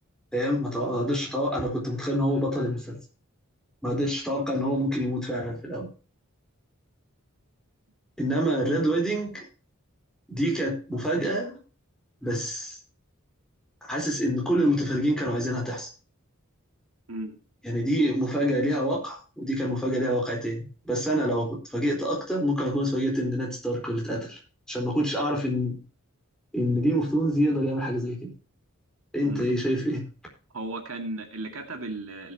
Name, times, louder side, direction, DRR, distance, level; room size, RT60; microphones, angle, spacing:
voice 1, 0.3-3.0 3.8-5.9 8.2-9.4 10.3-11.6 12.2-12.8 13.9-15.9 17.6-24.4 24.7-25.8 26.5-28.3 29.1-30.0, equal, 5° left, -2 dB, 4.1 m, -26 dB
voice 2, 30.5-32.3, right 2 dB, 70° right, 3 dB, 2.2 m, -35 dB
18.5 x 7.7 x 2.9 m, 0.35 s
head